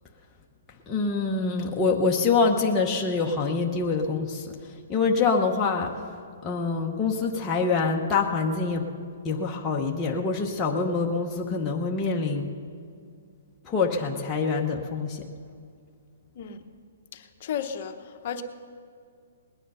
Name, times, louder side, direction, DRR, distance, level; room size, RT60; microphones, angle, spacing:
voice 1, 0.9-6.1 6.4-8.9 9.2-12.5 13.6-15.3, left 4 dB, 10° left, -2 dB, 0.8 m, -25 dB
voice 2, 17.1-18.4, left 8 dB, 40° left, 7 dB, 0.9 m, -34 dB
19.5 x 10.0 x 5.5 m, 2.2 s
hypercardioid pair, 165°, 0 cm